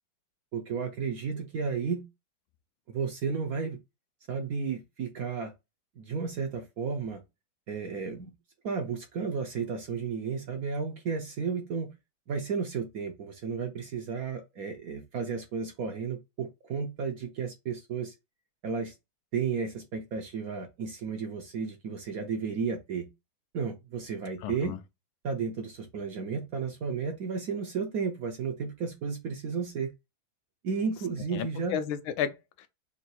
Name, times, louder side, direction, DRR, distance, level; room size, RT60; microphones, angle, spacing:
voice 1, 0.5-2.0 2.9-3.8 4.3-5.5 6.0-7.2 7.7-8.3 8.6-11.9 12.3-18.1 18.6-18.9 19.3-23.1 23.5-24.8 25.2-29.9 30.6-31.8, right 5 dB, 65° right, 0.9 m, -33 dB
voice 2, 24.4-24.8 31.3-32.7, left 8 dB, 85° left, 1.4 m, -33 dB
3.7 x 2.5 x 4.2 m
omnidirectional pair, 2.2 m